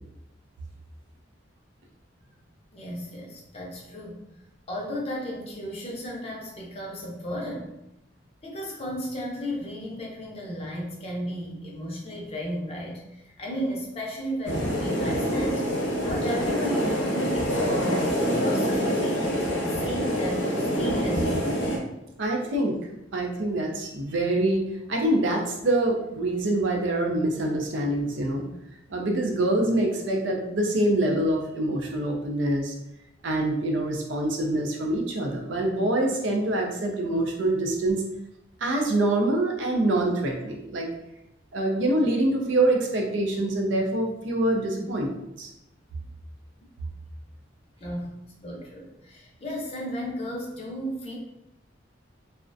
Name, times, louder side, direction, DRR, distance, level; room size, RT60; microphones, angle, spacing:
voice 1, 2.7-4.3 4.7-7.7 8.4-18.0 18.3-21.8 47.8-51.2, equal, 30° left, -2 dB, 0.5 m, -34 dB
sound 1, 14.4-21.8, equal, 80° left, 0.7 m, -26 dB
voice 2, 22.2-22.8 23.1-28.4 28.9-32.7 33.2-38.0 38.6-40.9 41.5-45.1 45.4-45.5, right 1 dB, 75° right, 1 dB, 0.5 m, -25 dB
2.4 x 2.1 x 2.5 m, 0.87 s
head